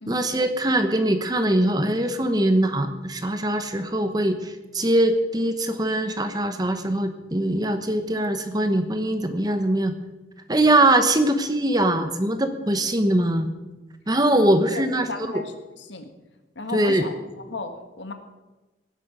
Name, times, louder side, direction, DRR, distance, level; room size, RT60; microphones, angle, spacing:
voice 1, 0.1-9.9 10.5-13.5 14.1-15.4 16.7-17.1, right 1 dB, 20° right, 8 dB, 1.0 m, -22 dB
voice 2, 14.7-16.1 16.6-17.2 17.5-18.1, left 3 dB, 70° left, 6 dB, 1.7 m, -35 dB
18.0 x 11.0 x 5.2 m, 1.1 s
head